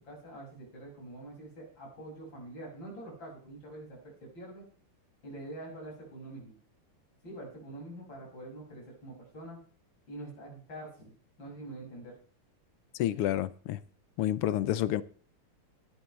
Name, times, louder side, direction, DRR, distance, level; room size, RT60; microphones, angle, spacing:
voice 1, 0.0-4.6 5.2-6.5 7.2-9.6 10.1-12.1, right 1 dB, 55° left, 7.2 m, -45 dB
voice 2, 13.0-13.8 14.2-15.0, left 12 dB, 85° left, 1.7 m, -29 dB
18.0 x 11.0 x 3.3 m
omnidirectional pair, 2.4 m